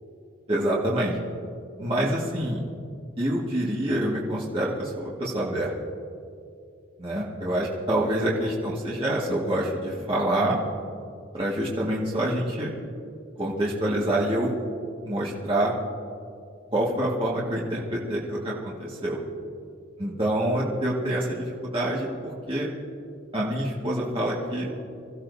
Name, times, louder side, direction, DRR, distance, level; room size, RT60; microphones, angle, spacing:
voice 1, 0.5-1.2 1.8-2.6 3.2-5.7 7.0-10.6 11.3-12.7 13.4-14.5 15.0-15.8 16.7-19.2 20.0-22.7 23.3-24.7, right 1 dB, 30° right, -6 dB, 1.8 m, -26 dB
25.5 x 15.0 x 2.7 m, 2.4 s
head